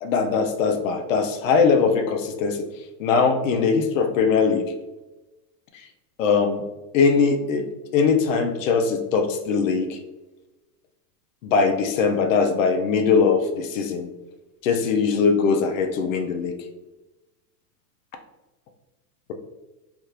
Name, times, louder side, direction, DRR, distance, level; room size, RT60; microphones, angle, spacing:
voice 1, 0.0-2.7 3.0-4.7 6.2-6.6 6.9-10.0 11.4-14.1 14.6-16.6, left 5 dB, 55° left, 6 dB, 0.5 m, -21 dB
3.4 x 2.4 x 2.9 m, 1.1 s
supercardioid pair, 155°, 48 cm